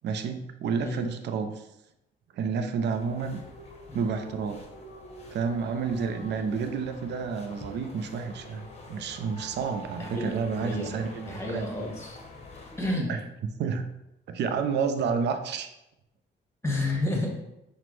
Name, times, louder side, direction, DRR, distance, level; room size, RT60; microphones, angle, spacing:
voice 1, 0.0-1.7 2.3-3.4 3.9-4.6 5.3-11.7 13.1-13.2 13.6-13.9 14.3-15.7, right 5 dB, 60° right, 7 dB, 0.4 m, -30 dB
sound 1, 2.9-12.9, left 1 dB, 35° left, 0.8 m, -46 dB
voice 2, 10.0-12.2 12.8-13.1 16.6-17.3, left 1 dB, 15° left, -1 dB, 1.1 m, -31 dB
5.7 x 2.1 x 3.1 m, 0.87 s
cardioid pair, 90°, 20 cm